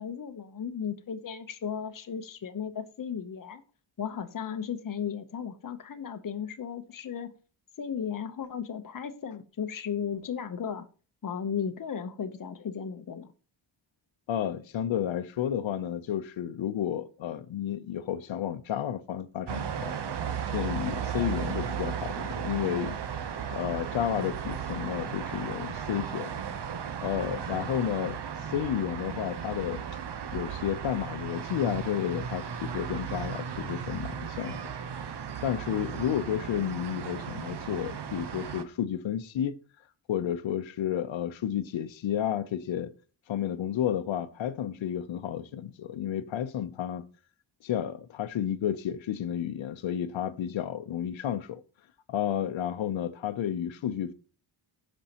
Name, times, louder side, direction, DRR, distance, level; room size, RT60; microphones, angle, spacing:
voice 1, 0.0-3.6 4.0-7.3 7.8-10.8 11.2-13.3, left 7 dB, 45° left, 0.9 m, -35 dB
voice 2, 14.3-19.9 20.5-22.9 23.5-26.3 27.0-29.8 30.3-34.6 35.0-35.2 35.4-39.6 40.1-42.9 43.3-47.0 47.6-51.6 52.1-54.1, left 10 dB, 85° left, 0.8 m, -31 dB
sound 1, 19.5-38.6, right 7 dB, 60° right, 1.0 m, -35 dB
15.5 x 5.4 x 2.9 m
cardioid pair, 75°, 45 cm